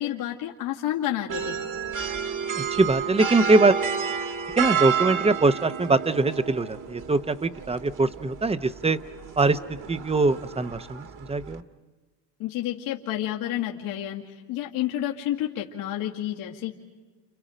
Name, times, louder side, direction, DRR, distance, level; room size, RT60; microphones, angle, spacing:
voice 1, 0.0-1.7 12.4-16.7, left 12 dB, 75° left, -3 dB, 2.3 m, -30 dB
sound 1, 1.3-11.6, right 7 dB, 40° right, 1.7 m, -31 dB
voice 2, 2.6-3.8 4.6-9.0 9.4-9.6 9.9-11.6, right 3 dB, 10° right, 12 dB, 0.8 m, -22 dB
30.0 x 28.0 x 5.1 m, 1.3 s
supercardioid pair, 90°, 49 cm